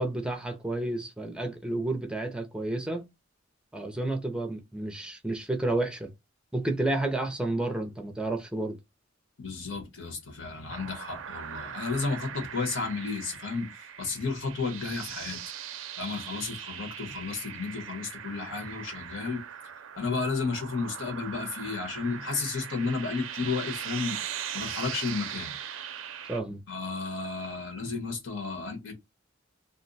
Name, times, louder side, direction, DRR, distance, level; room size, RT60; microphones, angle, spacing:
voice 1, 0.0-3.1 3.7-6.1 6.5-8.8 26.3-26.6, right 2 dB, 5° right, 0.4 m, -31 dB
voice 2, 9.4-15.4 16.0-19.4 20.0-24.2 24.5-25.5 26.7-28.9, left 4 dB, 80° left, 1.2 m, -32 dB
sound 1, 10.7-26.4, right 9 dB, 90° right, 0.4 m, -40 dB
2.6 x 2.1 x 3.9 m
head